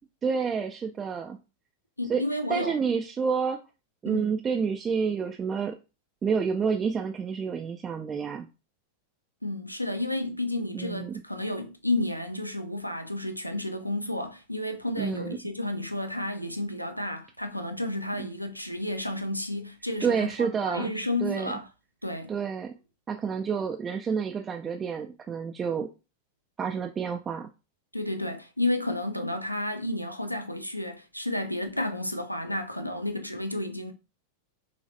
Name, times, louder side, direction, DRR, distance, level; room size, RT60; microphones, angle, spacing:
voice 1, 0.2-1.4 2.1-2.2 2.5-3.6 4.0-5.8 6.2-8.5 10.7-11.2 15.0-15.4 18.2-18.3 20.0-20.9 21.2-21.5 22.3-22.7 23.1-25.9 26.6-27.5, right 6 dB, 20° right, 0.3 m, -29 dB
voice 2, 2.0-2.7 4.1-4.3 9.4-21.7 22.0-22.3 27.9-33.9, left 1 dB, 90° left, 0.4 m, -31 dB
3.2 x 3.1 x 2.6 m
figure-of-eight pair, 90°, 0 cm